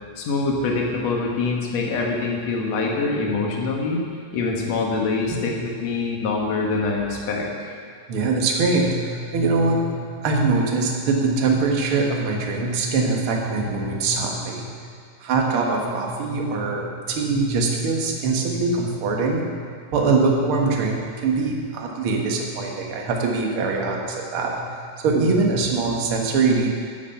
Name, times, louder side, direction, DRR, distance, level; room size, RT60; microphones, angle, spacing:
voice 1, 0.2-4.0 4.3-5.5 5.8-7.8, left 3 dB, 55° left, -1 dB, 2.4 m, -24 dB
voice 2, 5.3-5.7 8.1-14.7 15.2-19.6 19.9-24.6 25.0-26.7, right 3 dB, 50° right, 0 dB, 1.8 m, -23 dB
15.5 x 7.2 x 5.8 m, 2.1 s
omnidirectional pair, 4.0 m